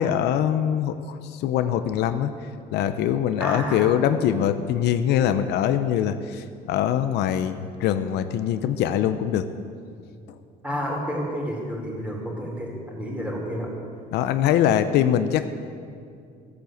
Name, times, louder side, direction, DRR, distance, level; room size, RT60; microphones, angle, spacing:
voice 1, 0.0-2.3 2.7-9.5 14.1-15.5, left 10 dB, 80° left, 10 dB, 0.7 m, -23 dB
voice 2, 3.4-4.0 10.6-13.7, equal, 5° right, -3 dB, 4.3 m, -30 dB
15.0 x 8.5 x 7.9 m, 2.3 s
cardioid pair, 110°, 17 cm